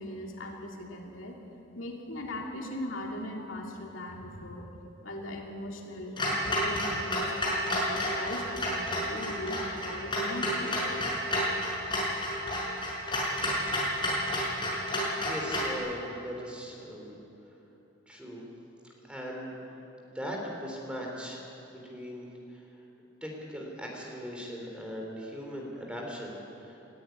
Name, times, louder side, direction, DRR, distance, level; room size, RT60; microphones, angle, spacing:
voice 1, 0.0-1.4 1.7-4.7 5.0-11.0, left 1 dB, 80° left, 0 dB, 2.6 m, -39 dB
Clock, 6.2-15.7, equal, 25° left, 6.1 m, -30 dB
voice 2, 15.2-17.1 18.1-18.4 19.0-19.5 20.0-22.6 23.2-26.8, equal, 5° right, -1 dB, 3.8 m, -39 dB
20.0 x 14.0 x 9.5 m, 2.9 s
head